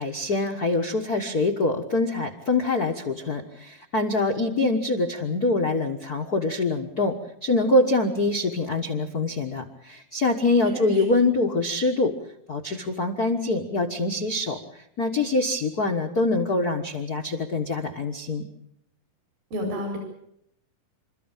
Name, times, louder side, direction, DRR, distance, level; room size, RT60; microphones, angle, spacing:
voice 1, 0.0-7.1 7.4-12.1 12.5-14.6 15.0-18.4, left 2 dB, 70° left, 5 dB, 0.9 m, -24 dB
voice 2, 10.7-11.1 19.5-20.0, equal, 80° right, 2 dB, 6.0 m, -30 dB
27.5 x 14.0 x 9.0 m, 0.76 s
omnidirectional pair, 4.1 m